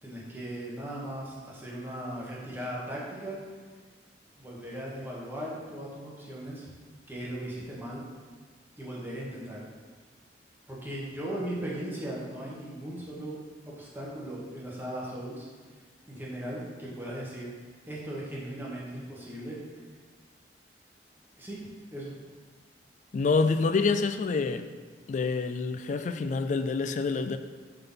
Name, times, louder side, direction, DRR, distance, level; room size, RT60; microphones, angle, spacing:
voice 1, 0.0-3.4 4.4-6.7 7.1-8.0 8.8-9.6 10.7-13.4 13.8-15.4 16.1-17.5 17.9-19.6 21.4-22.1, right 1 dB, 10° right, -5 dB, 1.3 m, -38 dB
voice 2, 23.1-24.7 25.1-27.4, left 4 dB, 40° left, 10 dB, 0.3 m, -27 dB
5.5 x 3.8 x 5.6 m, 1.4 s
head